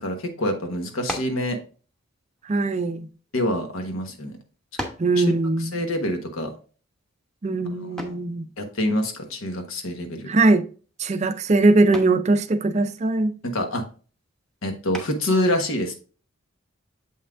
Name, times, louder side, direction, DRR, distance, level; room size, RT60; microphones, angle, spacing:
voice 1, 0.0-1.6 3.3-4.3 5.2-5.3 5.6-6.5 7.8-8.1 8.6-10.3 13.5-13.8 14.6-16.0, left 1 dB, 75° left, 1.2 m, -26 dB
sound 1, 1.0-1.5 2.4-3.6 4.2-4.3 4.8-5.2 8.0-8.3 10.2-10.6 11.0-11.3 11.9-12.3 14.9-15.4, equal, 5° left, 0.8 m, -35 dB
voice 2, 2.5-3.1 5.0-5.9 7.4-8.5 10.3-10.7 11.0-13.3, right 2 dB, 30° right, 0.4 m, -21 dB
7.2 x 5.6 x 2.4 m
head